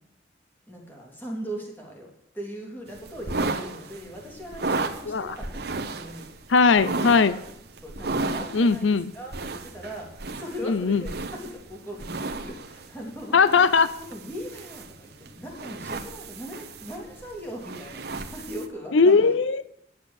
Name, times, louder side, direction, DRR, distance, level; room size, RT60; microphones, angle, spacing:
voice 1, 0.7-6.3 6.8-6.9 7.3-7.4 7.8-10.1 10.4-13.4 14.0-19.4, equal, 10° left, -1 dB, 3.3 m, -39 dB
sound 1, 2.9-18.7, right 3 dB, 55° right, 1.2 m, -34 dB
voice 2, 5.1-5.4 6.5-7.4 8.5-9.1 10.6-11.0 13.3-13.9 18.9-19.6, left 4 dB, 80° left, 15 dB, 0.6 m, -19 dB
10.5 x 8.2 x 8.3 m, 0.74 s
head